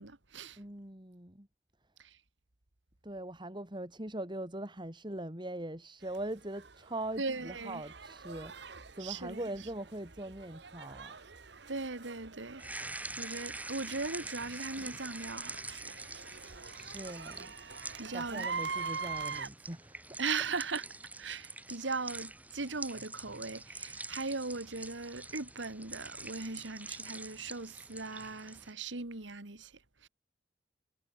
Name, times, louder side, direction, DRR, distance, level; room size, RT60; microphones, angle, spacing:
voice 1, 0.0-0.6 2.0-2.2 7.2-7.8 9.0-9.4 11.7-12.7 13.2-16.0 18.0-18.5 20.2-20.8 21.2-30.1, right 4 dB, 85° right, 2.1 m, -39 dB
voice 2, 0.6-1.5 3.0-11.2 16.8-17.6 18.1-20.2, right 1 dB, 25° right, 3.3 m, -41 dB
sound 1, 6.0-19.5, right 5 dB, 65° right, 1.7 m, -44 dB
sound 2, 12.6-28.7, right 2 dB, 10° right, 2.4 m, -45 dB
head